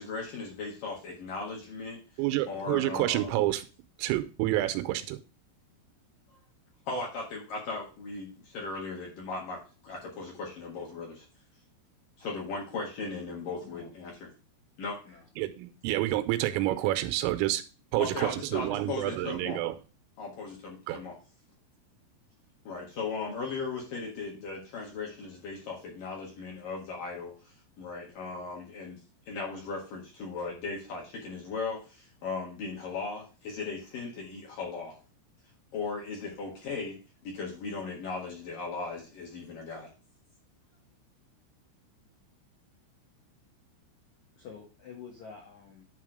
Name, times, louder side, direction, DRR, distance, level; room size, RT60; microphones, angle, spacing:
voice 1, 0.0-2.0 2.5-3.4 6.9-11.3 12.2-14.3 14.8-15.0 18.0-19.6 20.2-21.2 22.6-29.0 29.3-35.0 35.7-39.9, left 4 dB, 60° left, -2 dB, 2.4 m, -37 dB
voice 2, 2.2-3.6 4.0-5.2 15.4-17.6 17.9-19.8 20.9-21.0, right 15 dB, 90° right, 11 dB, 3.3 m, -28 dB
voice 3, 44.4-45.8, left 6 dB, 75° left, -1 dB, 1.7 m, -48 dB
10.5 x 3.6 x 4.9 m, 0.34 s
omnidirectional pair, 5.9 m